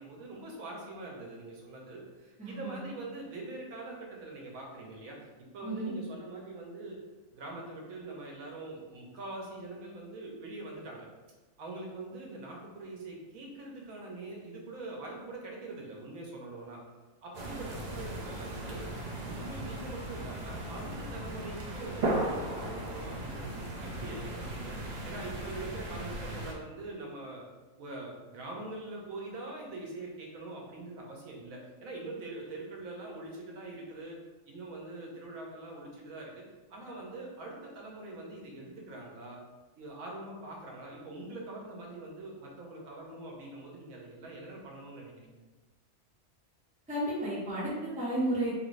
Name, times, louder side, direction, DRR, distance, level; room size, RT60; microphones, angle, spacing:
voice 1, 0.0-5.3 5.5-7.0 7.3-11.1 11.6-16.8 17.2-18.9 19.2-27.4 27.8-34.2 34.5-36.4 36.7-39.4 39.8-45.4, right 2 dB, 85° right, -1 dB, 1.2 m, -43 dB
voice 2, 2.4-2.8 5.6-5.9 46.9-48.7, right 1 dB, 5° right, -9 dB, 1.0 m, -32 dB
sound 1, 17.3-26.5, right 1 dB, 65° right, 0.4 m, -37 dB
3.4 x 2.5 x 3.1 m, 1.2 s
omnidirectional pair, 1.4 m